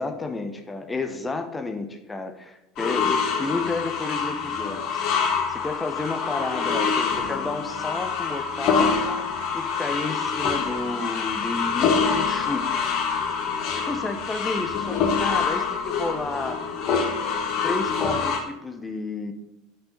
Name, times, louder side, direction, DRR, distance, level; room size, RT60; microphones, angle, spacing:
voice 1, 0.0-5.0 5.5-12.7 13.4-16.6 17.6-19.3, left 3 dB, 15° left, 6 dB, 1.0 m, -31 dB
sound 1, 2.8-18.4, left 5 dB, 45° left, 1.4 m, -25 dB
6.7 x 5.9 x 5.4 m, 0.92 s
figure-of-eight pair, 75°, 0 cm